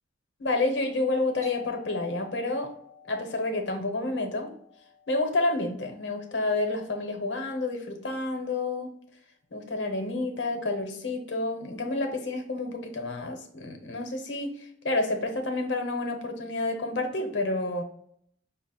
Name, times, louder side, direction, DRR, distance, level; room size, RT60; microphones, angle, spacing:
voice 1, 0.4-2.7 3.1-4.5 5.1-8.9 9.5-14.5 14.8-17.8, left 2 dB, 70° left, 4 dB, 0.8 m, -29 dB
Doorbell, 1.4-6.8, left 6 dB, 45° right, 1.5 m, -51 dB
5.4 x 2.0 x 4.1 m, 0.69 s
head